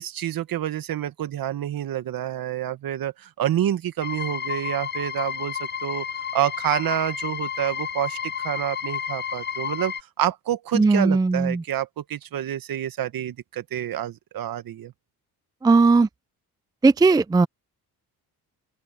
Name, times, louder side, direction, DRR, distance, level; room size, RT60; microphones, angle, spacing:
voice 1, 0.0-6.0 6.3-14.9, right 11 dB, 65° right, 1.6 m, -28 dB
sound 1, 4.0-10.0, left 7 dB, 30° left, 0.7 m, -31 dB
voice 2, 10.7-11.6 15.6-16.1 16.8-17.5, right 3 dB, 10° right, 0.4 m, -17 dB
open air
cardioid pair, 85°, 38 cm